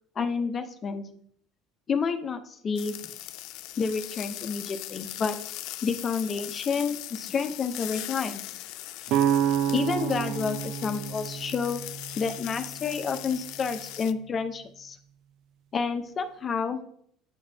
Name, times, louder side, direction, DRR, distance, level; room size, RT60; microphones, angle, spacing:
voice 1, 0.2-1.0 1.9-2.9 3.8-5.4 5.8-8.4 9.7-11.8 12.2-15.0 15.7-16.8, left 5 dB, 40° left, 7 dB, 0.9 m, -29 dB
sound 1, 2.8-14.1, left 15 dB, 70° left, 0.3 m, -39 dB
sound 2, 9.1-12.9, right 10 dB, 65° right, 0.4 m, -28 dB
8.8 x 6.8 x 2.8 m, 0.63 s
hypercardioid pair, 75°, 0 cm